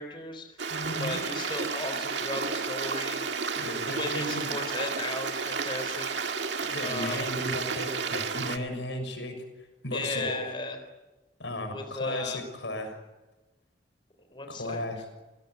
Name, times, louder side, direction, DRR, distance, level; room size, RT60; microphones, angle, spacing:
voice 1, 0.0-0.7 1.0-3.2 3.9-6.2 6.8-7.3 9.9-10.8 11.7-12.4 14.3-14.8, left 2 dB, 30° left, 5 dB, 3.8 m, -35 dB
Stream, 0.6-8.6, right 5 dB, 75° right, 2.0 m, -32 dB
voice 2, 0.7-1.2 3.5-4.5 6.6-9.4 9.8-10.4 11.4-13.0 14.5-15.0, left 1 dB, 85° left, 7 dB, 6.6 m, -35 dB
28.0 x 18.0 x 8.3 m, 1.1 s
head